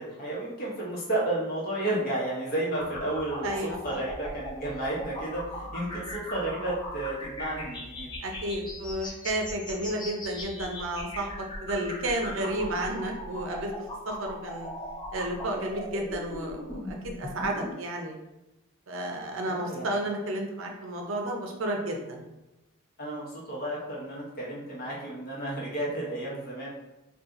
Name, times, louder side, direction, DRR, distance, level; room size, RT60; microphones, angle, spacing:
voice 1, 0.0-8.1 19.5-19.9 23.0-26.7, right 1 dB, 45° left, -5 dB, 1.0 m, -32 dB
sound 1, 2.7-17.7, left 1 dB, 20° left, 0.5 m, -39 dB
voice 2, 3.4-3.8 8.2-13.7 14.0-14.7 15.1-18.2 18.9-22.2, right 1 dB, 65° right, 2 dB, 0.6 m, -32 dB
2.7 x 2.4 x 3.6 m, 0.96 s
head